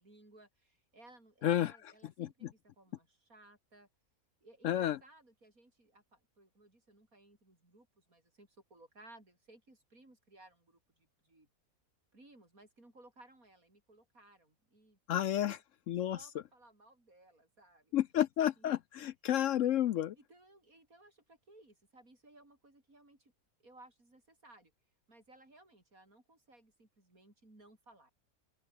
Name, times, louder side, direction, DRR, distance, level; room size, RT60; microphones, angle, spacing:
voice 1, 0.0-3.9 4.4-11.5 12.1-15.5 16.1-18.0 18.6-18.8 20.2-23.3 23.6-24.7 25.1-28.1, right 2 dB, 70° right, 7.8 m, -61 dB
voice 2, 1.4-1.7 2.2-2.5 4.6-5.0 15.1-15.6 15.9-16.2 17.9-20.1, left 11 dB, 65° left, 0.9 m, -31 dB
open air
omnidirectional pair, 1.5 m